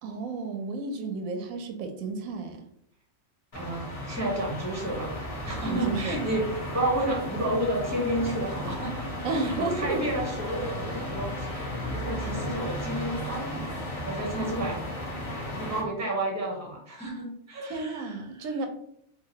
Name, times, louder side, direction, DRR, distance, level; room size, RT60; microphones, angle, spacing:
voice 1, 0.0-2.6 5.6-6.2 9.2-10.1 17.7-18.7, right 3 dB, 85° right, 5 dB, 1.0 m, -32 dB
sound 1, 3.5-15.8, left 1 dB, 30° left, 0.8 m, -34 dB
voice 2, 3.5-5.1 5.4-6.5 6.7-13.7 14.1-14.8 15.3-18.5, right 1 dB, 15° right, -2 dB, 0.8 m, -31 dB
2.9 x 2.8 x 2.7 m, 0.70 s
omnidirectional pair, 1.4 m